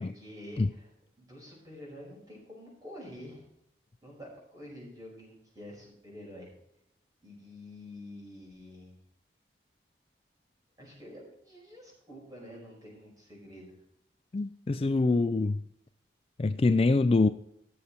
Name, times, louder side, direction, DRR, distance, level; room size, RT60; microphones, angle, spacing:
voice 1, 0.0-3.5 4.0-6.5 7.2-9.0 10.8-13.8, left 1 dB, 20° right, 5.2 m, -48 dB
voice 2, 14.3-15.6 16.4-17.3, left 3 dB, 30° left, 0.3 m, -25 dB
16.0 x 6.8 x 4.4 m
head